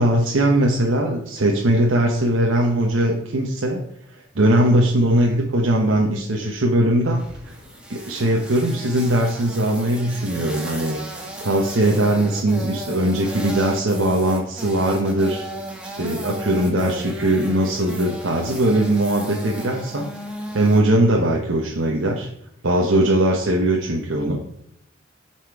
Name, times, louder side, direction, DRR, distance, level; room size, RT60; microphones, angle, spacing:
voice 1, 0.0-3.8 4.3-7.2 7.9-11.0 11.4-15.4 16.0-20.1 20.5-22.3 22.6-24.4, right 1 dB, 65° right, -1 dB, 0.9 m, -20 dB
sound 1, 7.2-20.8, equal, 5° right, 1.2 m, -34 dB
8.2 x 4.3 x 4.7 m, 0.77 s
head